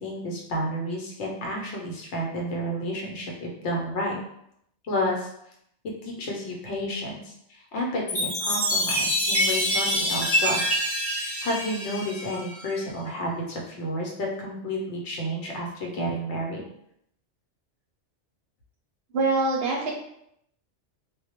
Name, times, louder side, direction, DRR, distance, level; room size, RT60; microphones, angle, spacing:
voice 1, 0.0-4.1 4.8-5.3 6.0-10.7 11.1-16.6, equal, 75° left, -1 dB, 0.9 m, -31 dB
Chime, 8.1-12.7, equal, 15° left, 0.6 m, -26 dB
voice 2, 19.1-19.9, right 3 dB, 65° right, -2 dB, 0.7 m, -24 dB
2.2 x 2.0 x 2.9 m, 0.75 s
omnidirectional pair, 1.2 m